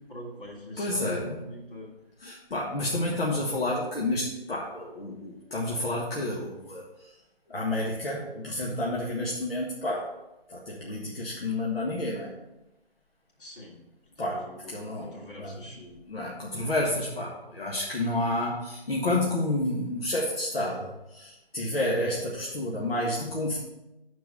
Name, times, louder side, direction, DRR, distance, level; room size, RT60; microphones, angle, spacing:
voice 1, 0.0-1.9 13.4-13.8 14.2-16.0, equal, 60° left, -3 dB, 3.2 m, -43 dB
voice 2, 0.8-1.4 2.2-7.1 7.5-10.1 10.5-12.3 14.2-15.6 16.1-23.6, left 1 dB, 75° left, -3 dB, 1.7 m, -30 dB
9.6 x 4.7 x 5.4 m, 0.96 s
figure-of-eight pair, 155°, 30 cm